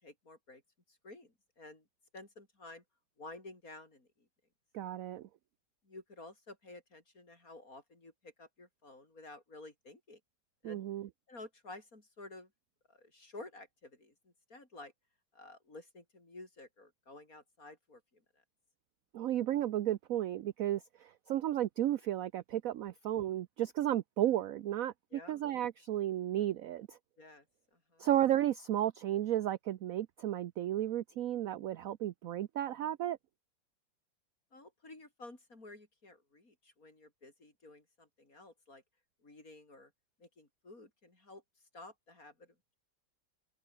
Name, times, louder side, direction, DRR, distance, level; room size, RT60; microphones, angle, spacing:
voice 1, 0.0-0.6 0.9-1.9 2.1-2.8 3.2-4.3 5.8-10.2 10.6-10.8 11.3-12.5 12.9-14.9 15.3-18.4 25.1-25.4 27.2-27.5 27.7-28.1 34.5-38.8 39.2-39.9 40.2-41.4 41.7-42.7, left 2 dB, 45° left, 5.4 m, -52 dB
voice 2, 4.7-5.3 10.6-11.1 19.1-27.0 28.0-33.2, right 12 dB, 70° right, 0.8 m, -33 dB
omnidirectional pair, 2.1 m